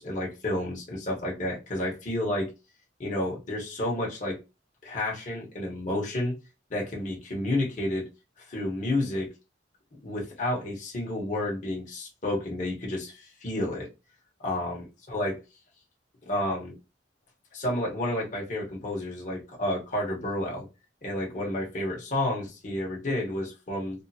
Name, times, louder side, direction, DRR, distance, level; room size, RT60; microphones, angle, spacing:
voice 1, 0.0-2.5 3.0-4.4 4.8-6.4 6.7-8.0 8.4-9.3 10.0-13.9 14.4-14.8 15.1-15.3 16.3-16.7 17.5-20.7 21.0-24.0, left 1 dB, 45° left, 1.2 m, -30 dB
3.5 x 2.5 x 2.8 m
head